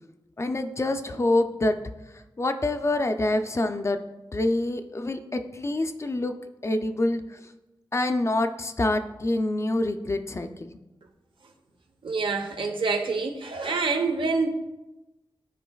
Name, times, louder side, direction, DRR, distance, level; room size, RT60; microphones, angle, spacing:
voice 1, 0.4-1.8 2.4-4.0 4.3-6.3 6.6-7.2 7.9-10.7, left 2 dB, 35° left, 0.4 m, -26 dB
voice 2, 12.0-14.5, right 4 dB, 75° right, 0.8 m, -26 dB
13.0 x 4.7 x 2.3 m
wide cardioid pair, 120°, 9 cm